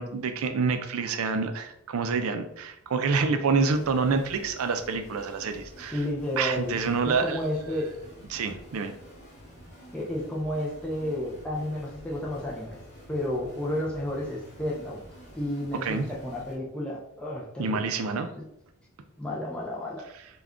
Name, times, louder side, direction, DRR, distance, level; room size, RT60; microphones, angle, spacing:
voice 1, 0.0-6.0 6.4-7.4 8.3-8.9 15.8-16.0 17.6-18.3, right 4 dB, 65° right, 8 dB, 0.4 m, -27 dB
sound 1, 3.7-16.6, equal, 30° left, 1.1 m, -49 dB
voice 2, 5.9-6.8 7.1-7.9 9.9-12.8 13.1-15.0 15.3-17.9 18.4-18.5 19.2-20.1, left 1 dB, 5° left, -4 dB, 0.3 m, -32 dB
2.4 x 2.2 x 3.5 m, 0.79 s
head